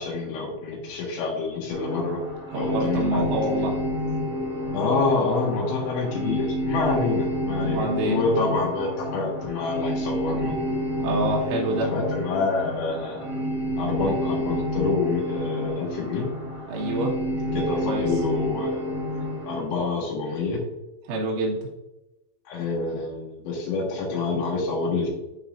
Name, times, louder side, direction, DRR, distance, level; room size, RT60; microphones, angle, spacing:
voice 1, 0.0-2.2 2.5-3.4 4.7-10.5 11.8-13.3 13.8-16.3 17.5-18.8 19.5-20.6 22.5-25.1, left 3 dB, 75° left, -2 dB, 3.8 m, -27 dB
sound 1, 1.7-19.6, equal, 30° right, 2.2 m, -29 dB
voice 2, 2.5-3.8 7.6-8.2 11.0-11.9 16.7-17.1 17.8-18.0 21.1-21.6, right 1 dB, 80° right, -3 dB, 4.1 m, -26 dB
12.0 x 4.1 x 2.5 m, 0.97 s
omnidirectional pair, 5.4 m